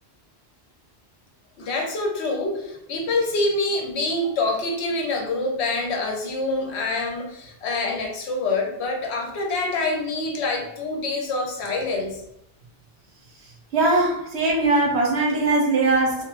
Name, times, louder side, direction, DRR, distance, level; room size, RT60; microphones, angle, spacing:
voice 1, 1.6-12.2, left 2 dB, 80° left, 1 dB, 0.9 m, -26 dB
voice 2, 13.7-16.2, right 2 dB, 80° right, -1 dB, 1.0 m, -20 dB
3.1 x 2.0 x 2.3 m, 0.81 s
omnidirectional pair, 1.1 m